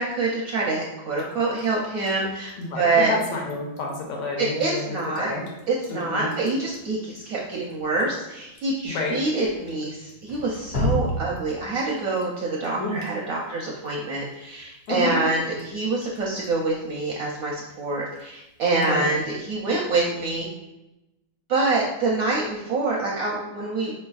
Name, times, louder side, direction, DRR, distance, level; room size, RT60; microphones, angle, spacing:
voice 1, 0.0-3.1 4.4-5.3 5.7-20.5 21.5-23.9, right 3 dB, 70° right, -3 dB, 0.8 m, -26 dB
Drip, 1.1-19.4, equal, 90° left, 1.5 m, -38 dB
voice 2, 2.6-5.5 5.9-6.3 8.8-9.2 12.8-13.0 14.9-15.2 18.8-19.1, left 2 dB, 70° left, -1 dB, 1.3 m, -29 dB
4.3 x 3.3 x 2.3 m, 0.95 s
omnidirectional pair, 2.0 m